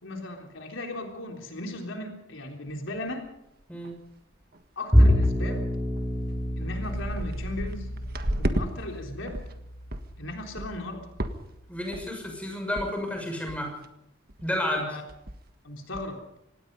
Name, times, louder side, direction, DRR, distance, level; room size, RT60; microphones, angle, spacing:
voice 1, 0.0-3.3 4.8-5.7 6.6-7.9 8.4-9.4 10.2-11.1 14.7-15.0 15.6-16.2, left 1 dB, 80° left, 2 dB, 3.6 m, -37 dB
sound 1, 2.7-2.8 3.3-3.4 3.6-4.0 4.3-4.6 5.2-5.3 6.0-6.1 6.3-8.7 9.0-9.5 9.9-10.1 10.6-10.9 11.2-11.6 11.9-12.3 12.8-12.9 13.1-13.2 13.5-13.9 14.3-14.5 14.8-14.9 15.1-15.5 15.9-16.0, right 1 dB, 50° right, 1.6 m, -33 dB
Bowed string instrument, 4.9-11.4, equal, 10° right, 4.3 m, -27 dB
voice 2, 11.7-13.7 14.4-14.9, left 1 dB, 5° left, 2 dB, 6.2 m, -31 dB
25.5 x 19.0 x 5.4 m, 0.84 s
head